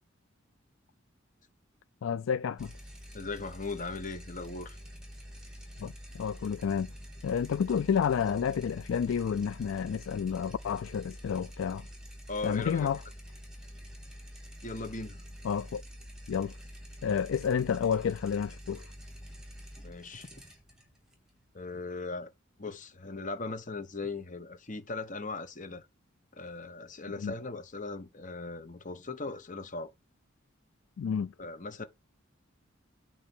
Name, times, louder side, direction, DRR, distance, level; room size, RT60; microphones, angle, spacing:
voice 1, 2.0-2.7 5.8-6.9 7.2-11.9 12.4-13.0 15.4-15.8 16.3-16.5 17.0-18.8 27.2-27.3 31.0-31.3, left 7 dB, 75° left, 0.3 m, -30 dB
sound 1, 2.6-21.9, equal, 5° right, 2.4 m, -47 dB
voice 2, 3.1-4.8 12.3-12.9 14.6-15.2 19.8-20.3 21.5-22.3 22.6-25.9 26.3-29.9 31.4-31.8, left 3 dB, 40° left, 1.1 m, -38 dB
8.5 x 3.1 x 6.1 m
head